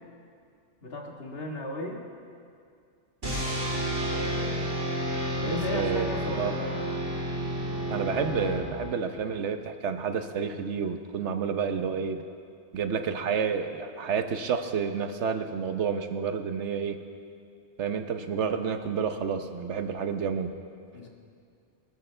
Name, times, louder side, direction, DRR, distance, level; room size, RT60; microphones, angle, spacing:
voice 1, 0.8-2.0 4.1-4.4 5.4-6.7 20.9-21.1, left 1 dB, 55° left, 0 dB, 1.9 m, -35 dB
sound 1, 3.2-9.1, right 1 dB, 90° right, 4.3 m, -30 dB
voice 2, 5.4-6.6 7.9-12.2 12.7-17.0 17.8-20.6, right 6 dB, 75° right, 7 dB, 1.2 m, -30 dB
23.0 x 14.0 x 3.3 m, 2.3 s
omnidirectional pair, 1.2 m